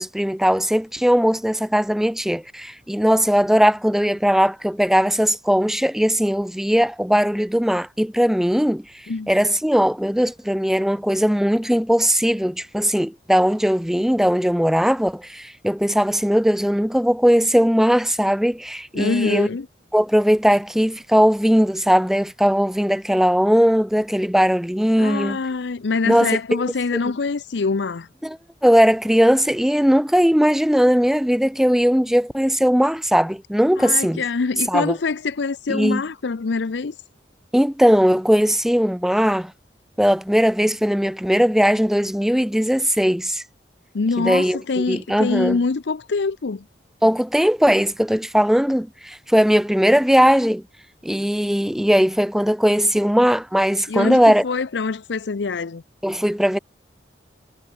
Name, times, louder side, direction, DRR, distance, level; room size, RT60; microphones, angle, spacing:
voice 1, 0.0-8.8 9.3-19.5 19.9-25.4 26.0-26.6 28.2-28.4 28.6-34.2 34.7-35.0 35.7-36.0 37.5-39.5 40.0-43.4 44.2-45.6 47.0-50.6 51.0-54.4 56.0-56.6, equal, ahead, 0.6 m, -19 dB
voice 2, 18.9-19.7 25.0-28.1 33.8-36.9 43.9-46.6 53.9-55.8, left 4 dB, 80° left, 0.6 m, -24 dB
head